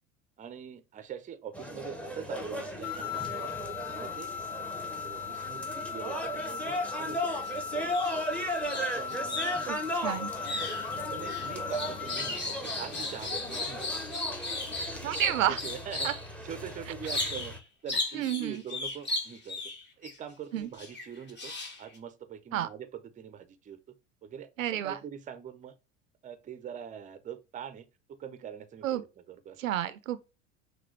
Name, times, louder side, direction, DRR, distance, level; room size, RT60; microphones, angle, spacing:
voice 1, 0.4-3.5 3.9-4.3 5.0-7.8 8.1-8.3 8.7-9.9 10.5-14.3 14.9-15.2 15.5-16.1 16.4-17.5 17.8-19.6 20.0-21.5 21.8-23.8 24.2-24.5 24.8-25.7 26.2-29.6, right 8 dB, 20° right, 0.6 m, -43 dB
sound 1, 1.5-17.6, equal, 5° left, 0.9 m, -36 dB
sound 2, 2.8-12.4, left 7 dB, 50° left, 1.3 m, -38 dB
sound 3, 7.2-7.5 7.8-16.3 17.0-17.6 17.9-20.1 20.8-22.0, left 2 dB, 25° left, 1.4 m, -36 dB
voice 2, 9.7-10.3 15.0-15.6 16.0-16.1 17.2-17.3 18.1-18.5 20.5-20.7 22.5-22.7 24.6-25.0 28.8-29.0 29.6-30.3, right 12 dB, 80° right, 0.5 m, -30 dB
5.9 x 2.4 x 3.2 m
figure-of-eight pair, 75°, 39 cm